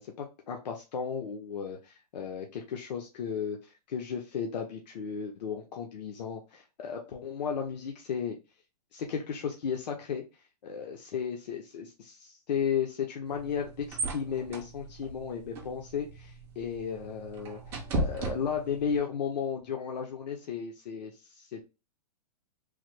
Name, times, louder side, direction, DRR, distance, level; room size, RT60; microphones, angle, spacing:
voice 1, 0.0-8.4 8.9-10.2 10.6-21.6, left 7 dB, 85° left, 2 dB, 0.6 m, -35 dB
sound 1, 13.3-19.0, right 2 dB, 10° right, 0.3 m, -37 dB
3.2 x 2.0 x 3.1 m, 0.29 s
hypercardioid pair, 160°, 21 cm